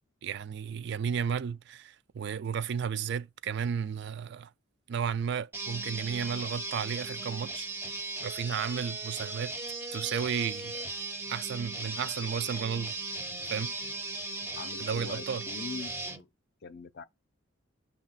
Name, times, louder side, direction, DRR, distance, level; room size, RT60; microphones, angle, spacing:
voice 1, 0.2-4.5 4.9-7.7 8.2-9.5 9.9-10.8 11.3-13.0 13.5-13.7 14.8-15.4, right 7 dB, 55° right, 0.3 m, -33 dB
sound 1, 5.5-16.2, right 2 dB, 10° right, 0.6 m, -37 dB
voice 2, 14.6-16.3 16.6-17.0, left 4 dB, 50° left, 0.5 m, -42 dB
6.7 x 2.8 x 5.6 m
head